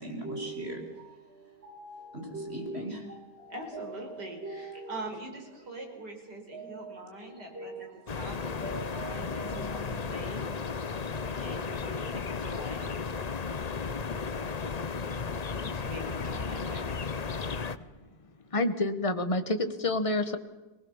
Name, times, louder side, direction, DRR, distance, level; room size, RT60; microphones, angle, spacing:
voice 1, 0.0-5.0 6.5-8.3 8.6-10.6, right 2 dB, 35° right, 1 dB, 5.5 m, -41 dB
voice 2, 3.5-10.5 11.4-13.0 15.6-16.9, right 1 dB, 70° right, 2 dB, 5.4 m, -43 dB
sound 1, 8.1-17.8, left 5 dB, 50° left, 0.5 m, -34 dB
voice 3, 18.5-20.4, left 2 dB, 20° left, 9 dB, 1.2 m, -28 dB
23.0 x 20.0 x 7.2 m, 1.1 s
omnidirectional pair, 1.9 m